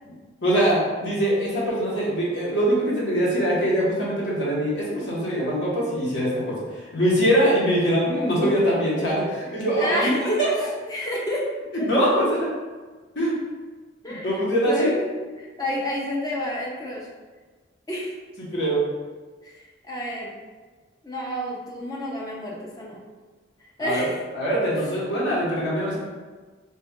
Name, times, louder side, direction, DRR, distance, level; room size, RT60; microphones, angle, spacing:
voice 1, 0.4-6.6 6.9-10.5 11.7-12.5 13.1-13.3 14.2-14.9 18.4-18.8 23.8-24.0 24.3-26.0, equal, 65° left, -7 dB, 1.1 m, -23 dB
voice 2, 9.8-11.4 14.0-15.1 15.4-17.1 17.9-18.1 19.4-20.3 21.0-23.0 23.8-24.2 25.1-25.6, left 1 dB, 20° left, -3 dB, 0.5 m, -30 dB
3.0 x 2.4 x 3.6 m, 1.4 s
head